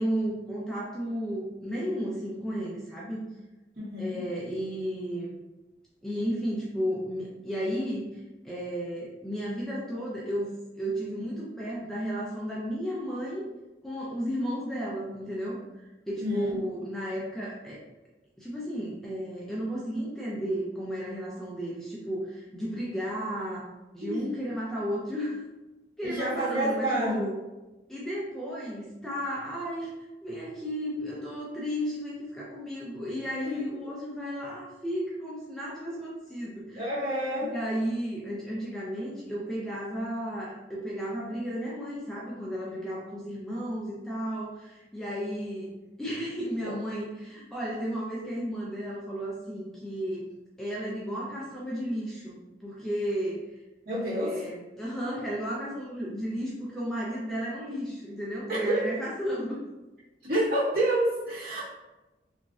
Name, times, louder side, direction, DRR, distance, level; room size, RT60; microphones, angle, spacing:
voice 1, 0.0-3.2 4.0-5.3 6.0-13.5 13.8-17.8 18.4-23.7 23.9-25.4 26.0-27.4 27.9-29.9 30.2-36.8 37.4-50.2 50.6-53.6 54.0-59.6, equal, ahead, -6 dB, 0.4 m, -33 dB
voice 2, 3.8-4.2 16.2-16.5 24.0-24.4 26.0-27.2 33.4-33.6 36.7-37.5 46.6-46.7 53.8-54.4 58.5-58.8 60.2-61.6, right 1 dB, 55° right, -10 dB, 1.5 m, -28 dB
3.0 x 2.5 x 2.3 m, 1.1 s
head